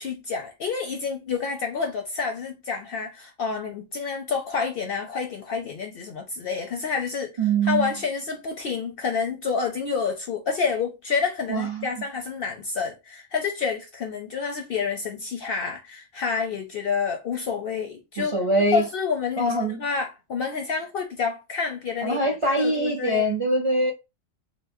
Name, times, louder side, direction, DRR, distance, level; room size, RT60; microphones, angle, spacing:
voice 1, 0.0-7.3 7.6-18.3 18.7-23.3, left 5 dB, 60° left, 0.6 m, -28 dB
voice 2, 7.4-7.9 11.5-11.9 18.2-18.8 19.4-19.8 22.0-23.9, right 2 dB, 40° right, 0.5 m, -23 dB
4.3 x 2.0 x 2.6 m
omnidirectional pair, 1.4 m